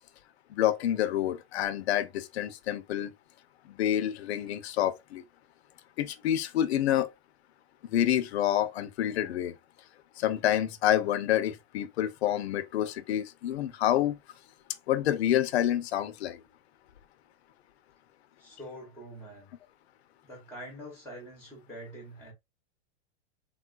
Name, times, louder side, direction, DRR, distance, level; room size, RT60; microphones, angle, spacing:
voice 1, 0.5-3.1 3.7-5.2 6.0-7.1 7.9-9.6 10.2-14.1 14.9-16.4, left 11 dB, 80° left, 0.6 m, -28 dB
voice 2, 18.4-19.5 20.2-22.3, equal, 5° left, 0.8 m, -45 dB
3.6 x 2.3 x 2.3 m
supercardioid pair, 160°, 32 cm